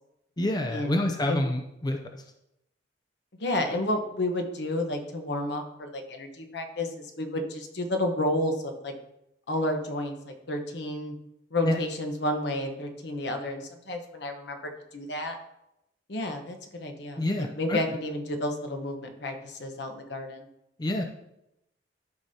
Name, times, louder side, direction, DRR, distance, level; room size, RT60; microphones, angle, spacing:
voice 1, 0.4-2.0 11.6-11.8 17.2-17.8 20.8-21.0, left 1 dB, 25° left, 4 dB, 0.5 m, -27 dB
voice 2, 3.4-8.9 9.5-11.1 11.5-15.4 16.1-20.5, left 1 dB, 70° left, 5 dB, 1.1 m, -31 dB
12.0 x 5.1 x 2.8 m, 0.84 s
head